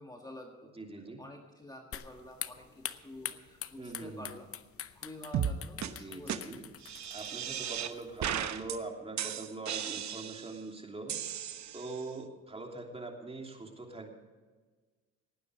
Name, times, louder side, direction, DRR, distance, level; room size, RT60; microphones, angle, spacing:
voice 1, 0.0-0.8 1.2-4.5 4.9-6.4, left 1 dB, 15° left, 2 dB, 1.6 m, -49 dB
voice 2, 0.7-1.2 3.8-4.3 6.0-6.6 7.1-11.4 11.7-14.2, right 3 dB, 20° right, 2 dB, 3.0 m, -43 dB
sound 1, 1.9-8.5, left 9 dB, 50° left, 0.8 m, -45 dB
sound 2, 5.3-5.5 5.8-5.9 6.3-6.4 6.8-7.9 8.2-8.8 9.2-10.6 11.1-12.0, right 9 dB, 65° right, 1.1 m, -35 dB
18.0 x 9.8 x 5.1 m, 1.4 s
cardioid pair, 90°, 30 cm